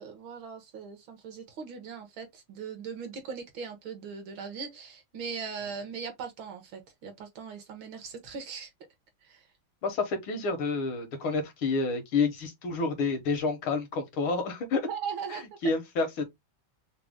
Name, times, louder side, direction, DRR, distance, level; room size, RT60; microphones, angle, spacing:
voice 1, 0.0-8.7 9.2-9.4 14.9-15.5, right 6 dB, 70° right, 2.1 m, -39 dB
voice 2, 9.8-14.9 15.3-16.2, left 4 dB, 85° left, 2.1 m, -29 dB
5.8 x 2.2 x 3.6 m
omnidirectional pair, 2.2 m